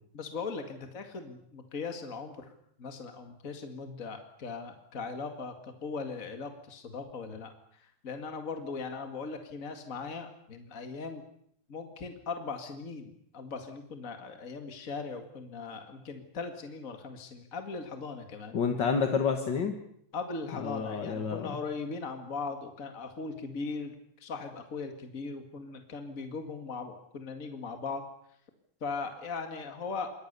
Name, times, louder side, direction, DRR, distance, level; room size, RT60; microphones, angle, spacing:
voice 1, 0.1-2.5 2.8-11.2 11.7-18.6 20.1-28.1 28.8-30.1, left 4 dB, 40° left, 6 dB, 2.4 m, -39 dB
voice 2, 18.5-19.8 20.6-21.5, left 6 dB, 65° left, 6 dB, 2.3 m, -29 dB
27.0 x 22.5 x 6.9 m, 0.71 s
omnidirectional pair, 2.2 m